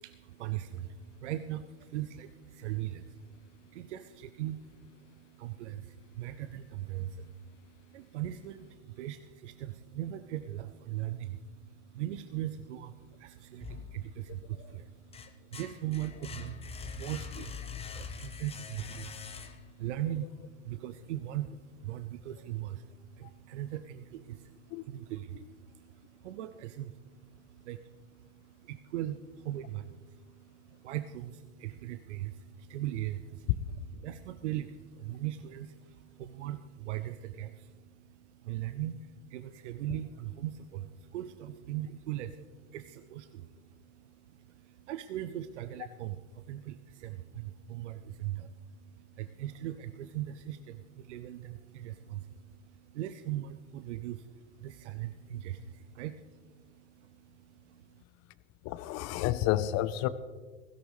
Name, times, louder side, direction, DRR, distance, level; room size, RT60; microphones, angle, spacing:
voice 1, 0.0-58.0, right 12 dB, 65° right, 11 dB, 0.7 m, -40 dB
sound 1, 13.6-14.4 14.9-19.9, left 5 dB, 15° left, 1.1 m, -43 dB
voice 2, 58.6-60.1, left 14 dB, 40° left, 15 dB, 0.8 m, -30 dB
16.5 x 16.5 x 3.2 m, 1.5 s
hypercardioid pair, 100°, 38 cm